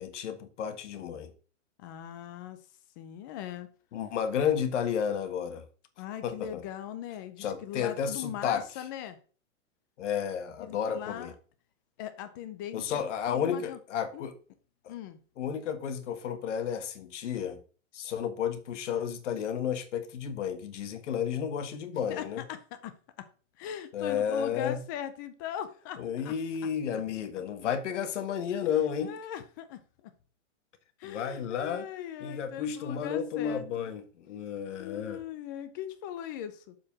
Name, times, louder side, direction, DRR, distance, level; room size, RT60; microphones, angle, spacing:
voice 1, 0.0-1.3 3.9-5.6 6.2-6.6 7.4-8.6 10.0-11.3 12.7-14.4 14.8-14.9 15.4-17.6 17.9-22.4 23.9-24.8 26.0-29.2 31.0-31.9 32.2-35.2, left 8 dB, 65° left, 1.5 m, -32 dB
voice 2, 1.8-2.6 3.0-3.7 6.0-9.2 10.6-11.3 12.0-12.9 13.3-13.8 14.1-14.3 14.9-15.2 22.1-23.0 23.6-26.3 29.0-30.1 31.0-33.9 34.7-36.8, left 10 dB, 15° left, 0.4 m, -40 dB
7.4 x 4.9 x 5.9 m
hypercardioid pair, 150°, 39 cm